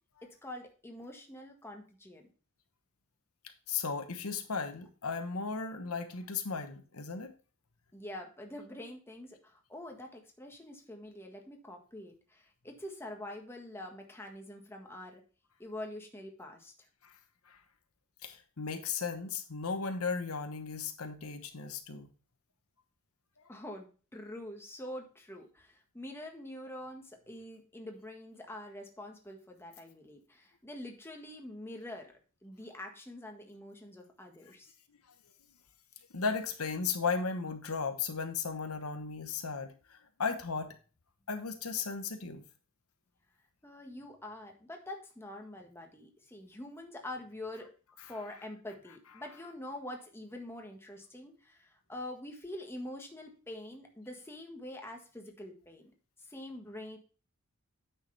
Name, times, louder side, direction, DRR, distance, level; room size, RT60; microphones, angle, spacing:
voice 1, 0.4-2.2 7.9-15.2 15.6-16.7 23.5-32.1 32.4-34.7 43.6-47.7 48.1-55.9 56.3-57.0, left 1 dB, 10° left, 2 dB, 1.6 m, -45 dB
voice 2, 3.7-7.3 17.0-17.1 17.5-17.6 18.2-22.1 23.4-23.5 36.1-40.7 41.3-42.4, left 5 dB, 80° left, 7 dB, 1.1 m, -36 dB
9.2 x 6.6 x 3.3 m, 0.36 s
head